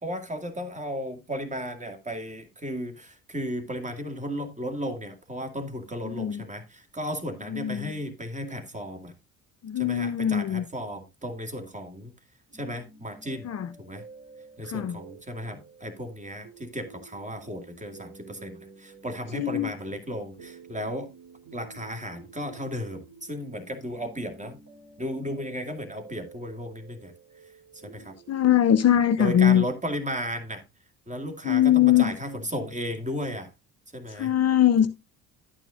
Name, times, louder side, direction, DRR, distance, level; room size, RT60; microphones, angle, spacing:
voice 1, 0.0-9.1 9.8-12.1 12.5-13.5 13.8-14.0 14.6-21.1 21.5-24.6 25.0-27.1 27.8-28.1 29.2-30.6 31.1-33.5 33.9-34.3, equal, 15° right, 2.3 m, -34 dB
voice 2, 6.0-6.4 7.5-8.0 9.6-10.6 13.4-13.7 14.6-15.0 19.3-19.7 28.3-29.7 31.4-32.1 34.1-34.9, left 10 dB, 40° left, 0.6 m, -22 dB
sound 1, 12.5-29.1, right 4 dB, 50° right, 3.8 m, -50 dB
11.0 x 9.1 x 2.5 m
hypercardioid pair, 55°, 42 cm